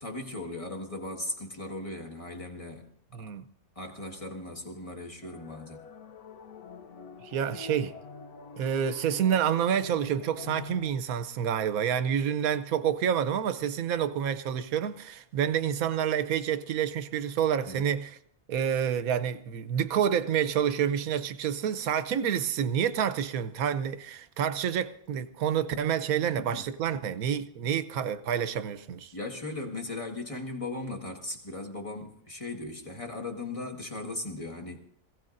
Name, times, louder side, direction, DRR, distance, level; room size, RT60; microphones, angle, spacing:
voice 1, 0.0-2.9 3.2-3.3 3.8-5.8 17.7-17.9 26.2-26.7 26.9-27.0 29.1-34.8, left 2 dB, 25° left, 1.7 m, -38 dB
voice 2, 3.1-3.4 7.2-7.9 8.6-18.2 18.5-29.1, right 8 dB, 75° right, 1.2 m, -28 dB
sound 1, 5.2-10.9, left 5 dB, 80° left, 1.3 m, -46 dB
25.5 x 16.5 x 2.6 m
omnidirectional pair, 1.5 m